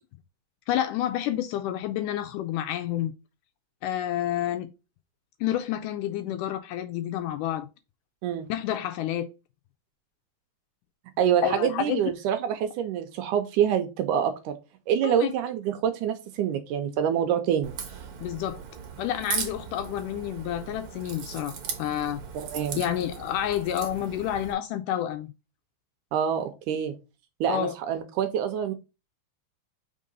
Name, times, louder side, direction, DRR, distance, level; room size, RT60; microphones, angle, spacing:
voice 1, 0.7-3.1 3.8-4.7 5.4-7.7 8.5-9.3 11.4-12.0 15.0-15.3 18.2-18.6 19.0-22.2 22.7-25.3 27.5-27.7, left 11 dB, 80° left, 1.9 m, -29 dB
voice 2, 11.2-14.5 14.9-17.8 22.4-22.8 26.1-26.9 27.4-28.7, right 9 dB, 80° right, 2.0 m, -26 dB
Crack, 17.6-24.5, right 6 dB, 60° right, 1.6 m, -38 dB
5.2 x 3.7 x 5.3 m
omnidirectional pair, 4.0 m